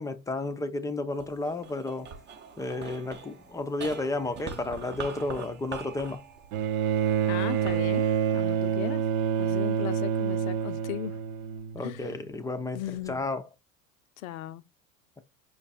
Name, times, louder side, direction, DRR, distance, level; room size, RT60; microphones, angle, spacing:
voice 1, 0.0-2.1 2.6-6.2 11.7-12.8 13.1-13.4, left 2 dB, 10° left, 0.4 m, -32 dB
sound 1, 1.1-9.6 10.2-10.9, right 6 dB, 25° right, 0.7 m, -45 dB
Bowed string instrument, 6.5-12.0 13.1-13.2, right 8 dB, 75° right, 0.8 m, -27 dB
voice 2, 7.3-9.0 9.4-11.2 11.8-12.1 12.7-13.2 14.2-14.6, left 12 dB, 70° left, 0.6 m, -37 dB
5.7 x 2.3 x 4.0 m
hypercardioid pair, 95°, 43 cm